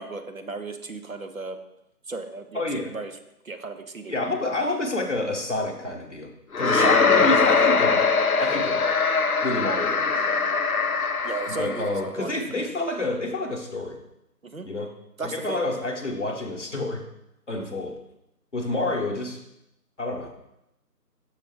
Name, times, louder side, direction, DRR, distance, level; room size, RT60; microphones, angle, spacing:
voice 1, 0.0-1.6 2.1-3.1 3.4-4.1 6.7-7.0 11.2-12.3 14.4-14.7 15.2-15.6, right 3 dB, 55° right, 7 dB, 0.6 m, -34 dB
voice 2, 2.5-2.9 4.1-6.3 6.6-8.1 8.4-8.9 9.4-10.2 11.6-14.0 14.6-14.9 15.2-17.0 17.5-18.0 18.5-19.4 20.0-20.3, left 2 dB, 45° left, 1 dB, 0.9 m, -28 dB
sound 1, 6.5-11.9, left 4 dB, 60° left, 0.5 m, -22 dB
6.4 x 5.1 x 3.5 m, 0.84 s
figure-of-eight pair, 170°, 49 cm